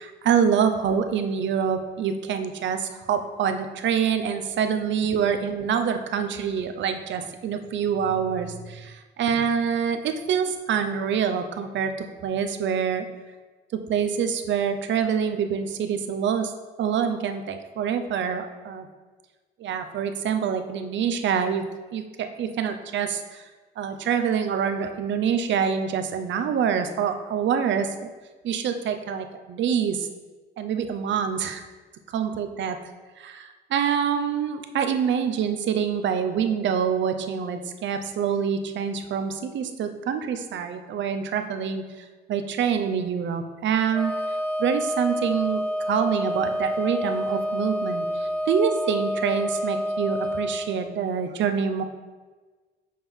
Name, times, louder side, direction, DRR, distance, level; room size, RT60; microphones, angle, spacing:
voice 1, 0.0-13.1 13.7-16.5 16.8-18.9 19.6-21.6 21.9-23.5 23.8-28.1 28.4-30.1 30.6-31.6 32.1-32.8 33.2-44.2 44.6-51.8, right 7 dB, 70° right, 8 dB, 0.7 m, -26 dB
Wind instrument woodwind instrument, 43.9-50.7, equal, ahead, 1.0 m, -28 dB
7.4 x 4.4 x 3.6 m, 1.3 s
cardioid pair, 90°, 20 cm